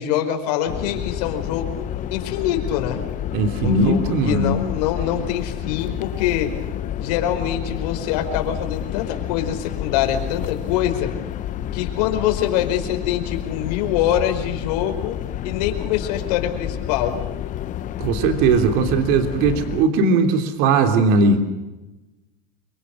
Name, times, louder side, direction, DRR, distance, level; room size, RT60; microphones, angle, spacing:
voice 1, 0.0-3.0 3.6-6.5 7.0-11.1 11.7-15.2 15.4-17.2, left 10 dB, 80° left, 5 dB, 5.0 m, -24 dB
sound 1, 0.7-19.8, left 11 dB, 40° left, 1.0 m, -29 dB
voice 2, 3.3-4.6 18.0-21.4, right 3 dB, 65° right, 6 dB, 3.4 m, -18 dB
28.5 x 24.0 x 6.4 m, 1.1 s
supercardioid pair, 135°, 20 cm